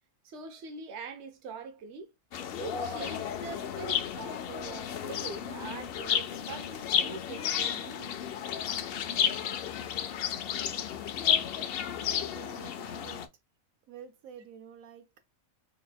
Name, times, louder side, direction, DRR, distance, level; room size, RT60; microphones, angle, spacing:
voice 1, 0.2-2.1 2.6-8.2, right 4 dB, 60° right, 1.1 m, -43 dB
sound 1, 2.3-13.3, left 8 dB, 65° left, 0.6 m, -32 dB
voice 2, 12.3-13.3 13.9-15.2, right 8 dB, 85° right, 1.0 m, -49 dB
4.1 x 3.6 x 2.2 m
omnidirectional pair, 1.4 m